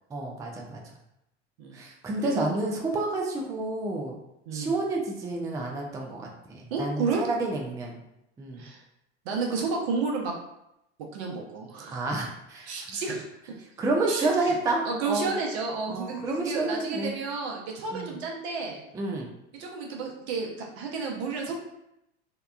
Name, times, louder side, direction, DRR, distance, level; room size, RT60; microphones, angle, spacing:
voice 1, 0.1-0.8 1.7-4.2 4.5-8.0 8.4-8.7 11.9-12.7 13.8-15.3 15.9-17.2 17.9-18.1 18.9-19.3, right 2 dB, 10° right, 0 dB, 0.3 m, -29 dB
voice 2, 2.2-2.5 4.5-4.7 6.7-7.2 8.6-8.8 9.2-10.3 11.1-12.0 12.7-13.2 14.1-14.5 14.8-18.8 19.6-21.6, right 4 dB, 65° right, 0 dB, 0.8 m, -31 dB
2.8 x 2.2 x 2.3 m, 0.84 s
hypercardioid pair, 80°, 34 cm